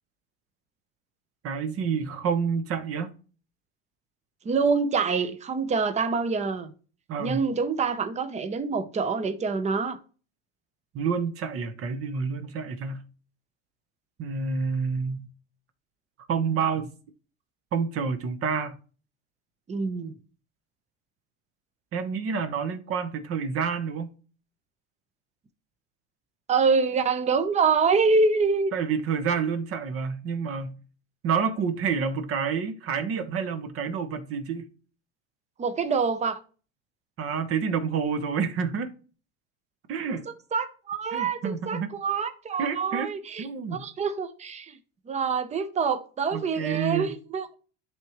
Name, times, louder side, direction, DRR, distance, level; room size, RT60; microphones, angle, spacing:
voice 1, 1.4-3.1 7.1-7.4 10.9-13.0 14.2-15.3 16.3-16.9 17.7-18.8 21.9-24.1 28.7-30.8 31.2-34.7 37.2-38.9 39.9-40.2 41.1-41.9 42.6-43.1 43.4-43.8 46.3-47.1, right 6 dB, 45° right, 1.2 m, -28 dB
voice 2, 4.4-6.7 7.2-10.0 19.7-20.1 26.5-28.7 35.6-36.4 40.5-44.8 45.1-47.5, right 4 dB, 20° right, 0.8 m, -26 dB
11.0 x 3.7 x 3.1 m
supercardioid pair, 120°, 31 cm